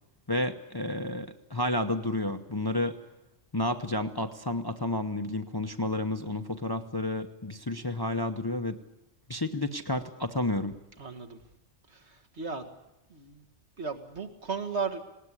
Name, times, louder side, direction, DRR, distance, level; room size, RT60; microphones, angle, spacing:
voice 1, 0.3-3.0 3.5-8.8 9.3-10.8, left 1 dB, 20° left, 7 dB, 0.8 m, -31 dB
voice 2, 11.0-11.4 11.9-12.6 13.1-13.5 13.8-15.1, right 5 dB, 65° right, 5 dB, 2.2 m, -35 dB
19.5 x 18.0 x 9.9 m, 0.90 s
omnidirectional pair, 1.2 m